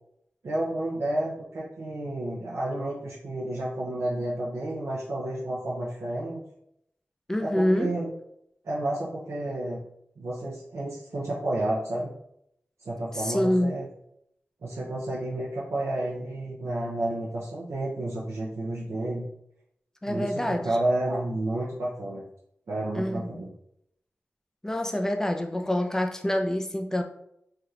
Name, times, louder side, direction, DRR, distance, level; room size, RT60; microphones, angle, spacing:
voice 1, 0.4-6.4 7.4-8.1 8.6-9.8 10.2-12.2 12.8-13.9 14.6-19.3 20.1-22.2 22.7-23.5, right 1 dB, 80° right, -7 dB, 0.6 m, -31 dB
voice 2, 7.3-8.0 13.1-13.8 20.0-20.7 22.9-23.4 24.6-27.0, left 1 dB, 10° left, 5 dB, 0.4 m, -26 dB
3.3 x 2.8 x 2.4 m, 0.75 s
wide cardioid pair, 75°, 5 cm